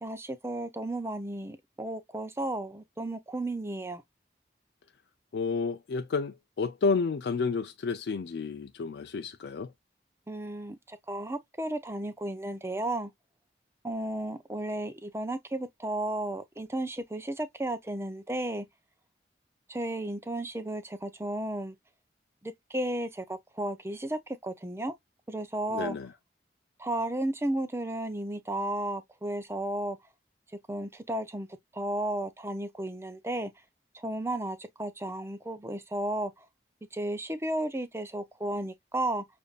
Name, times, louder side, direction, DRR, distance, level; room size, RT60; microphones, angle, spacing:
voice 1, 0.0-4.0 10.3-13.1 13.8-18.7 19.7-21.7 22.4-24.9 25.3-26.0 26.8-30.0 30.7-31.5 31.7-33.5 33.9-36.4 36.9-39.2, right 1 dB, 15° right, 0.5 m, -33 dB
voice 2, 5.3-9.7 25.7-26.1, left 4 dB, 75° left, 0.4 m, -31 dB
6.7 x 2.6 x 2.3 m
head